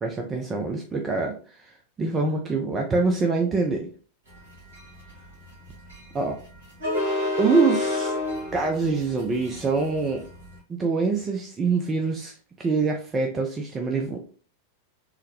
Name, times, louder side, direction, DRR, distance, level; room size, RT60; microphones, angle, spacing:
voice 1, 0.0-3.9 6.1-6.4 7.4-8.1 8.5-10.2 10.7-14.2, right 4 dB, 20° right, 2 dB, 0.4 m, -25 dB
sound 1, 4.3-10.6, left 2 dB, 65° right, 1.5 m, -30 dB
3.7 x 2.1 x 2.8 m, 0.40 s
figure-of-eight pair, 90°, 0 cm